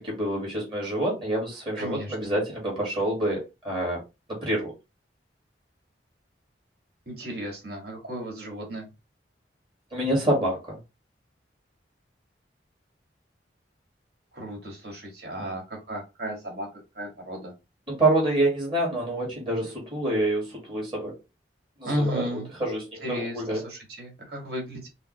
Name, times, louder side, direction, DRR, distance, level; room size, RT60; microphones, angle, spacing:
voice 1, 0.0-4.0 4.3-4.7 9.9-10.8 15.4-15.5 17.9-21.2 21.8-22.3 22.6-23.7, right 1 dB, 25° right, 1.8 m, -27 dB
voice 2, 1.8-2.1 7.1-8.9 14.3-16.7 16.9-17.5 21.8-22.5 23.0-24.9, equal, 55° right, 2.0 m, -34 dB
5.5 x 2.1 x 3.1 m
head